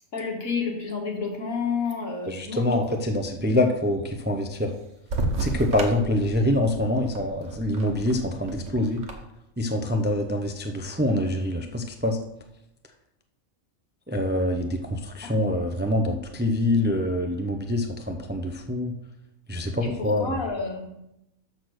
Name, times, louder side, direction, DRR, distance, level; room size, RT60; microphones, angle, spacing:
voice 1, 0.1-2.7 15.2-15.3 19.8-20.9, left 5 dB, 85° left, 1 dB, 2.1 m, -30 dB
voice 2, 2.3-4.7 5.4-9.0 9.6-12.2 14.1-18.9 19.5-20.4, left 1 dB, 15° right, 5 dB, 0.4 m, -25 dB
sound 1, 5.1-9.1, right 2 dB, 60° right, 1.5 m, -32 dB
6.6 x 6.0 x 6.4 m, 0.83 s
omnidirectional pair, 1.4 m